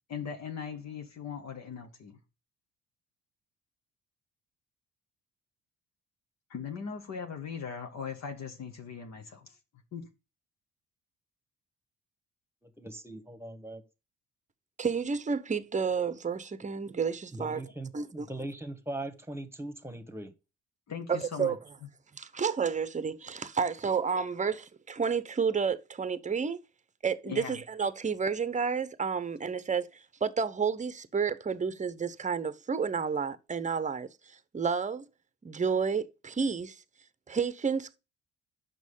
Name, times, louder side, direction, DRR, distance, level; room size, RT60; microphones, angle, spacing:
voice 1, 0.1-2.2 6.5-9.5 9.9-10.1 20.9-21.6 27.3-27.5, left 6 dB, 55° left, 1.4 m, -39 dB
voice 2, 12.6-13.8 17.3-20.3, right 1 dB, 5° right, 1.5 m, -40 dB
voice 3, 14.8-17.6 17.9-18.3 21.1-21.6 22.1-26.6 27.0-29.9 30.2-34.1 34.5-35.1 35.4-36.8 37.3-38.0, right 6 dB, 20° right, 0.8 m, -30 dB
6.3 x 5.7 x 5.5 m
hypercardioid pair, 50°, 32 cm